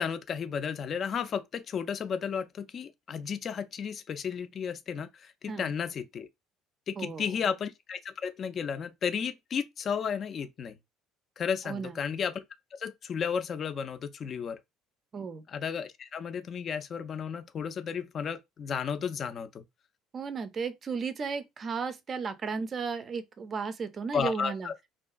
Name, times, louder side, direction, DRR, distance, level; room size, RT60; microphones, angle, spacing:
voice 1, 0.0-6.3 6.9-10.8 11.4-12.4 12.8-14.6 15.5-19.6 24.1-24.7, left 7 dB, 40° left, 0.3 m, -33 dB
voice 2, 7.0-7.3 11.6-12.0 15.1-15.4 20.1-24.7, right 5 dB, 35° right, 0.4 m, -34 dB
2.4 x 2.3 x 2.2 m
figure-of-eight pair, 55°, 0 cm